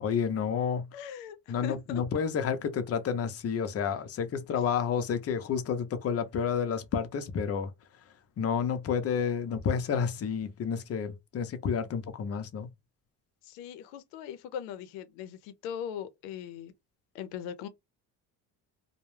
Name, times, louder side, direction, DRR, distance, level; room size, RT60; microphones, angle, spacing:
voice 1, 0.0-0.9 1.5-7.7 8.4-12.7, left 7 dB, 35° left, 0.6 m, -30 dB
voice 2, 0.9-2.0 13.4-16.7 17.1-17.7, left 9 dB, 90° left, 0.6 m, -40 dB
2.2 x 2.0 x 3.1 m
supercardioid pair, 90°, 41 cm